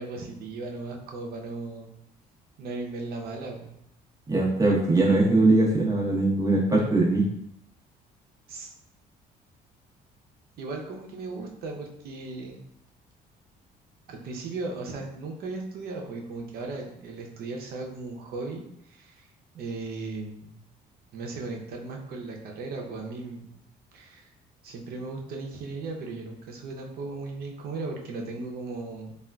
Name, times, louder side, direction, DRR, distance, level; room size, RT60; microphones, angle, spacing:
voice 1, 0.0-1.9 2.6-3.8 8.5-8.7 10.6-12.6 14.1-19.3 19.5-20.6 21.1-23.6 23.9-24.3 24.6-29.1, right 3 dB, 65° right, 1 dB, 0.7 m, -37 dB
voice 2, 4.3-7.2, right 2 dB, 20° right, -4 dB, 0.9 m, -21 dB
3.6 x 2.4 x 2.2 m, 0.77 s
cardioid pair, 110°, 17 cm